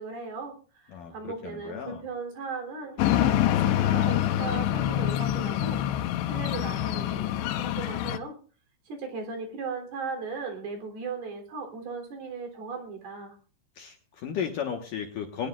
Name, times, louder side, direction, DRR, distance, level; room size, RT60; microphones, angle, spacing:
voice 1, 0.0-5.8 6.2-8.4 8.9-13.4, right 4 dB, 60° right, 4 dB, 5.2 m, -37 dB
voice 2, 0.9-2.0 13.8-15.5, left 7 dB, 65° left, 3 dB, 2.4 m, -34 dB
sound 1, 3.0-8.2, left 12 dB, 85° left, 3.2 m, -26 dB
21.0 x 19.5 x 2.4 m, 0.40 s
omnidirectional pair, 5.1 m